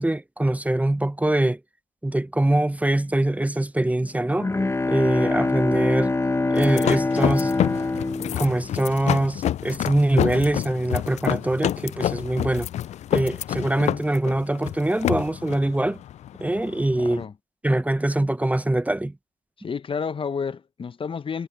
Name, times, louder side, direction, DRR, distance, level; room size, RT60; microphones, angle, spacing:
voice 1, 0.0-1.6 2.0-4.6 4.9-6.1 6.5-7.6 8.3-12.7 13.1-16.0 16.4-17.2 17.6-19.2, right 1 dB, 10° right, 1.0 m, -23 dB
Bowed string instrument, 4.0-9.5, left 3 dB, 20° left, 1.5 m, -25 dB
sound 1, 6.6-17.2, left 11 dB, 60° left, 0.5 m, -28 dB
voice 2, 17.0-17.3 19.6-21.5, left 6 dB, 45° left, 1.1 m, -30 dB
hypercardioid pair, 45°, 13 cm